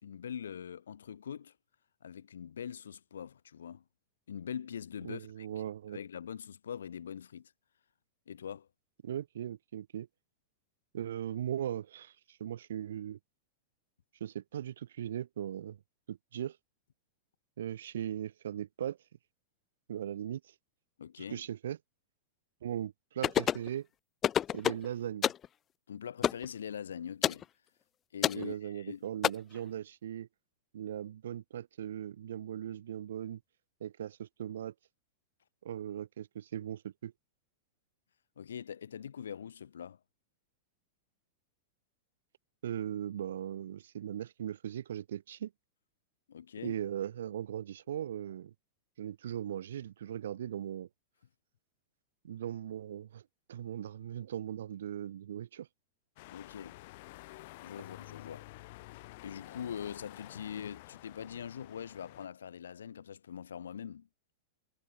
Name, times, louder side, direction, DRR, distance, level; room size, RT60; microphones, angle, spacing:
voice 1, 0.0-1.5 2.0-3.8 4.3-5.5 5.9-7.5 8.3-8.7 21.0-21.4 25.9-27.4 28.1-29.1 38.4-40.0 46.3-46.7 56.3-56.8 57.6-58.5 59.2-64.1, left 8 dB, 85° left, 5.1 m, -43 dB
voice 2, 5.0-6.0 9.0-10.1 10.9-13.2 14.2-15.8 16.1-16.6 17.6-19.0 19.9-20.4 21.3-21.8 22.6-23.9 24.5-25.3 28.3-30.3 30.7-33.4 33.8-34.7 35.6-37.1 42.6-45.5 46.6-48.5 49.0-50.9 52.2-53.2 53.5-55.7, right 10 dB, 80° right, 5.2 m, -39 dB
sound 1, 23.2-23.7 24.2-24.9 25.2-25.5 26.2-26.5 27.2-27.4 28.2-28.4 29.2-29.3, left 10 dB, 30° left, 0.5 m, -28 dB
sound 2, 56.2-62.3, left 21 dB, 60° left, 2.5 m, -50 dB
hypercardioid pair, 115°, 0 cm